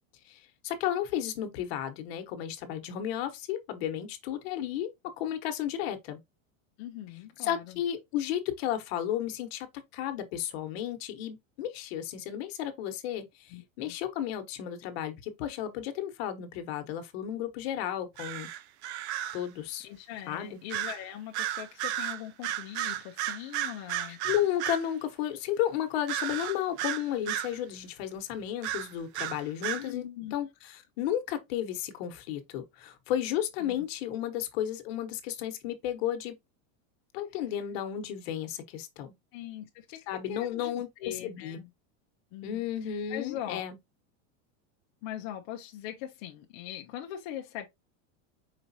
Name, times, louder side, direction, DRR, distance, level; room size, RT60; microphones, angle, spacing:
voice 1, 0.3-4.9 5.2-6.2 7.4-9.7 9.9-18.5 19.3-19.9 20.3-20.6 24.1-36.3 37.1-39.1 40.1-41.6 42.4-43.8, left 10 dB, 50° left, 1.0 m, -33 dB
voice 2, 6.8-7.8 13.5-14.0 19.8-24.2 29.8-30.3 33.6-33.8 39.3-40.0 40.2-41.7 42.3-43.6 45.0-47.7, left 12 dB, 30° left, 0.4 m, -41 dB
sound 1, 18.2-19.4 20.7-21.0 21.3-24.9 26.1-27.6 28.6-29.9, right 12 dB, 60° right, 0.5 m, -33 dB
4.9 x 4.0 x 2.7 m
supercardioid pair, 165°, 39 cm